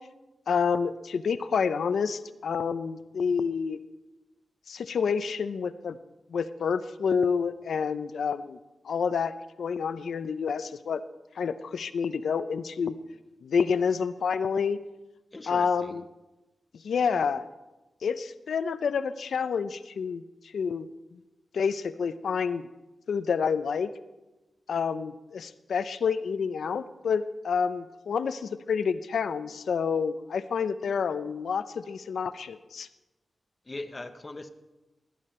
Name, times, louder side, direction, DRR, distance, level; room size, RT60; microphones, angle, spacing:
voice 1, 0.5-3.8 4.7-6.0 6.3-8.6 8.8-11.0 11.4-12.9 13.4-14.8 15.5-16.0 16.8-17.4 18.0-20.2 20.5-20.9 21.5-22.6 23.1-23.9 24.7-32.9, left 6 dB, 90° left, 13 dB, 0.6 m, -28 dB
voice 2, 15.3-16.0 33.7-34.5, left 2 dB, 25° left, 9 dB, 0.7 m, -40 dB
17.0 x 11.0 x 4.3 m, 1.1 s
wide cardioid pair, 165°, 0 cm